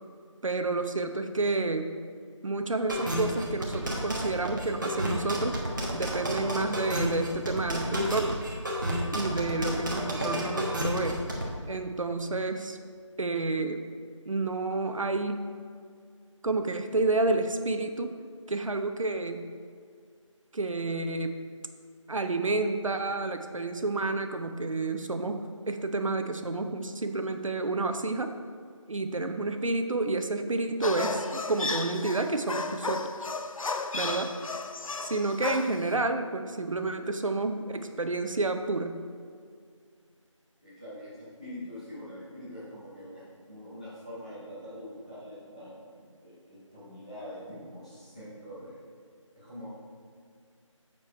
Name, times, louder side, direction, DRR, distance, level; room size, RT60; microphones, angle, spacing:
voice 1, 0.4-1.9 2.4-5.6 5.9-8.4 9.1-11.2 11.7-12.8 13.2-13.8 14.3-15.6 16.4-18.1 18.5-19.4 20.5-21.4 22.1-28.3 28.9-33.1 33.9-34.3 35.0-39.0, right 3 dB, 75° right, 7 dB, 0.6 m, -30 dB
sound 1, 2.9-11.4, equal, 35° right, 1.1 m, -31 dB
sound 2, 30.8-35.9, left 3 dB, 85° left, 0.5 m, -34 dB
voice 2, 34.0-34.3 40.6-45.9 46.2-48.8 49.3-49.7, equal, 15° left, -11 dB, 1.2 m, -44 dB
7.5 x 4.5 x 4.5 m, 2.1 s
figure-of-eight pair, 175°, 17 cm